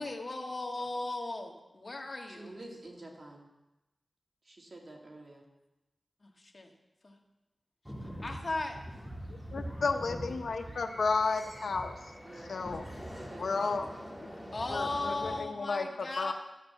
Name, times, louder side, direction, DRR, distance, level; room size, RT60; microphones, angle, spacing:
voice 1, 0.0-2.5 6.2-6.7 7.0-7.2 8.2-8.8 14.5-16.3, left 2 dB, 45° left, 2 dB, 1.5 m, -37 dB
voice 2, 2.4-3.5 4.4-5.5 8.1-8.3 9.8-10.3 10.7-10.8 12.2-13.7, right 2 dB, 50° right, -1 dB, 2.3 m, -50 dB
sound 1, 7.9-15.4, equal, 5° right, 3.0 m, -43 dB
voice 3, 9.5-12.9 13.4-13.9 14.7-16.3, left 4 dB, 85° left, 5 dB, 0.7 m, -33 dB
12.5 x 5.2 x 7.4 m, 0.99 s
wide cardioid pair, 80°, 0 cm